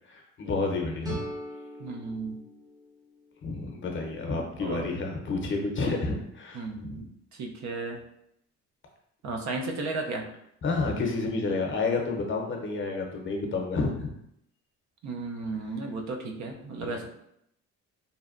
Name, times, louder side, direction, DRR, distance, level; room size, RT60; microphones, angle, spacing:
voice 1, 0.1-1.2 3.4-7.0 10.6-14.1 16.8-17.0, left 3 dB, 40° left, 1 dB, 0.6 m, -30 dB
sound 1, 1.0-3.9, right 1 dB, 15° right, 0.6 m, -41 dB
voice 2, 1.8-2.4 4.6-4.9 6.5-8.0 9.2-10.3 15.0-17.1, right 3 dB, 65° right, 2 dB, 0.5 m, -34 dB
2.7 x 2.1 x 2.4 m, 0.76 s
cardioid pair, 90°, 30 cm